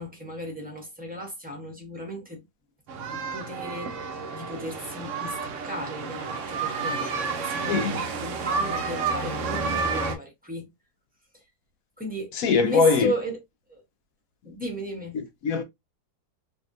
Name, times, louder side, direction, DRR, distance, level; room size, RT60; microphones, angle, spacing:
voice 1, 0.0-2.4 3.0-10.7 11.3-11.5 12.0-12.3 12.6-13.4 13.7-13.8 14.4-15.2, equal, 5° right, 0.9 m, -35 dB
sound 1, 2.9-10.2, right 4 dB, 65° right, 0.8 m, -30 dB
voice 2, 12.3-13.1 15.1-15.6, left 4 dB, 65° left, 1.0 m, -22 dB
3.4 x 2.7 x 2.6 m
omnidirectional pair, 1.8 m